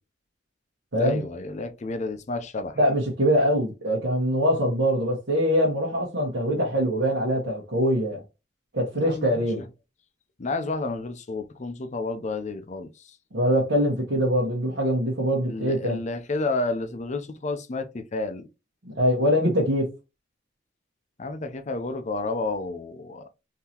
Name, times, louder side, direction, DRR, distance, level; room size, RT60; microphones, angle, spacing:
voice 1, 1.0-2.8 8.9-9.7 10.4-13.2 15.4-18.5 21.2-23.3, left 3 dB, 40° left, 0.5 m, -31 dB
voice 2, 2.8-8.2 8.7-9.6 13.3-16.0 18.8-19.9, equal, 70° right, 1.2 m, -23 dB
3.7 x 2.8 x 2.8 m
head